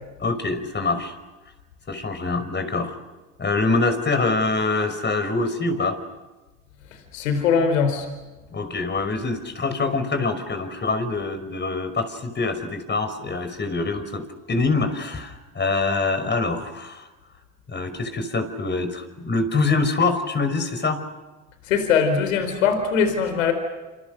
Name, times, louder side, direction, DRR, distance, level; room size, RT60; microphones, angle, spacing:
voice 1, 0.2-1.1 1.9-3.0 3.4-6.0 8.5-17.1 17.7-21.0, left 3 dB, 30° left, 9 dB, 5.5 m, -25 dB
voice 2, 7.1-8.1 21.7-23.5, left 6 dB, 85° left, 8 dB, 4.5 m, -21 dB
28.0 x 27.5 x 6.6 m, 1.1 s
hypercardioid pair, 80°, 38 cm